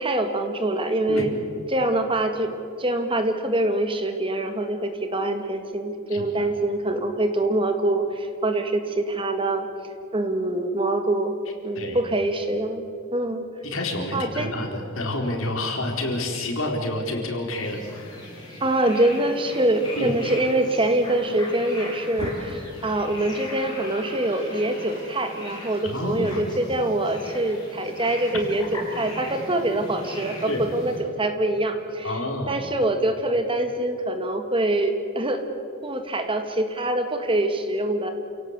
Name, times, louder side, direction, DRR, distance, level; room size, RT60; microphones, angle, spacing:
voice 1, 0.0-1.4 1.7-9.7 10.1-11.3 11.6-12.8 13.1-13.5 14.1-14.5 18.6-22.3 22.8-32.2 32.5-35.4 35.8-38.1, right 1 dB, 25° right, 6 dB, 2.0 m, -24 dB
voice 2, 6.1-6.5 11.7-12.0 13.6-18.2 20.0-20.2 22.2-22.3 25.8-26.4 30.5-30.7 32.0-32.6, left 1 dB, 80° left, 2 dB, 4.3 m, -29 dB
sound 1, 17.5-31.0, left 1 dB, 20° left, 7.6 m, -39 dB
29.0 x 17.5 x 8.2 m, 2.5 s
head